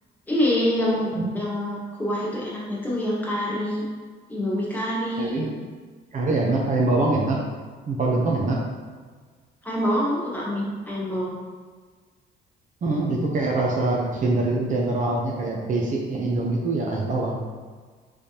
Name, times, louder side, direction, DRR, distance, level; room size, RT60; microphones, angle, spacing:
voice 1, 0.3-3.8 4.3-5.4 9.6-11.4, equal, 10° left, -6 dB, 1.3 m, -26 dB
voice 2, 5.2-5.5 6.1-7.4 7.9-8.6 12.8-17.4, right 2 dB, 45° right, -1 dB, 0.7 m, -24 dB
5.3 x 3.3 x 2.8 m, 1.5 s
cardioid pair, 120°, 19 cm